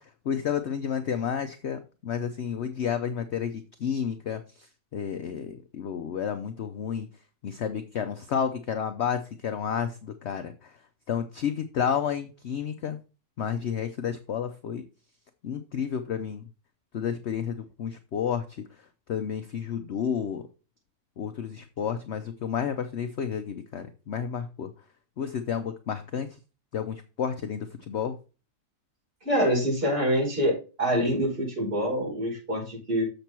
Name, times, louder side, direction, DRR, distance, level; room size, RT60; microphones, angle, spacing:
voice 1, 0.0-7.1 7.4-13.0 13.4-14.8 15.4-16.5 16.9-20.5 21.2-24.7 25.2-26.4 26.7-28.2, left 7 dB, 55° left, 8 dB, 0.8 m, -31 dB
voice 2, 29.2-33.0, equal, 35° right, -4 dB, 5.3 m, -26 dB
7.1 x 6.7 x 4.4 m, 0.33 s
omnidirectional pair, 1.7 m